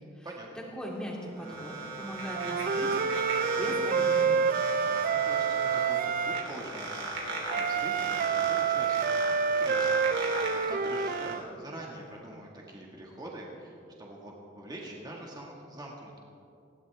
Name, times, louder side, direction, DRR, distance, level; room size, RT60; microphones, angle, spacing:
voice 1, 0.6-4.4, equal, 5° left, -3 dB, 2.8 m, -40 dB
sound 1, 0.9-11.3, right 2 dB, 70° right, 3.3 m, -37 dB
Wind instrument woodwind instrument, 2.3-6.5 7.5-11.4, right 6 dB, 45° right, 0.4 m, -28 dB
voice 2, 4.6-16.2, right 1 dB, 20° right, -2 dB, 1.8 m, -44 dB
20.0 x 16.5 x 3.5 m, 2.6 s
head